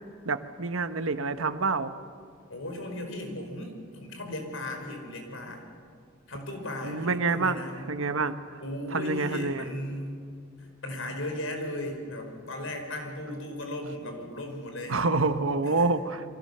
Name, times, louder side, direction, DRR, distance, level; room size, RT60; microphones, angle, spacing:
voice 1, 0.2-1.9 6.8-7.6 7.9-8.3 8.9-9.7 14.9-16.2, right 3 dB, 90° right, 10 dB, 1.2 m, -27 dB
voice 2, 2.5-5.6 6.3-7.9 8.6-10.2 10.6-15.0 15.6-15.9, left 1 dB, 80° left, 4 dB, 4.8 m, -36 dB
29.0 x 23.5 x 6.8 m, 2.2 s
head